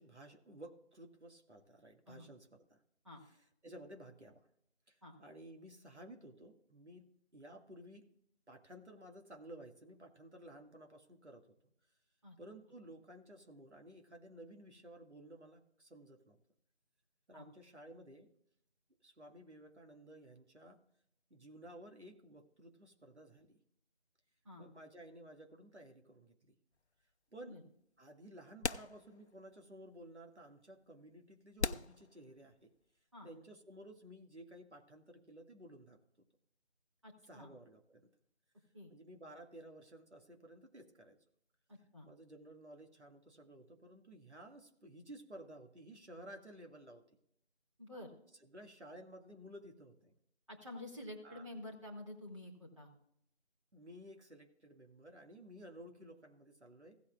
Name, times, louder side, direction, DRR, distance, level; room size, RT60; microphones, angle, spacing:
voice 1, 0.0-2.8 3.2-3.4 3.6-4.4 4.9-8.1 8.5-11.6 12.4-16.4 17.3-18.3 19.0-20.8 21.3-23.6 24.6-26.6 27.3-27.6 28.0-32.7 33.2-36.3 37.3-38.1 38.9-41.2 42.0-47.0 48.5-50.1 51.2-51.5 53.7-57.0, right 1 dB, 85° right, 3 dB, 2.1 m, -55 dB
sound 1, 26.7-26.8 28.0-28.1 28.6-29.5 29.9-30.0 30.7-30.8 31.6-32.8, left 4 dB, 80° left, 0.7 m, -40 dB
voice 2, 37.0-37.5 38.7-38.9 41.7-42.1 47.8-48.1 50.5-52.9, left 1 dB, 25° right, -3 dB, 2.5 m, -49 dB
16.5 x 8.6 x 2.4 m, 0.73 s
figure-of-eight pair, 175°, 33 cm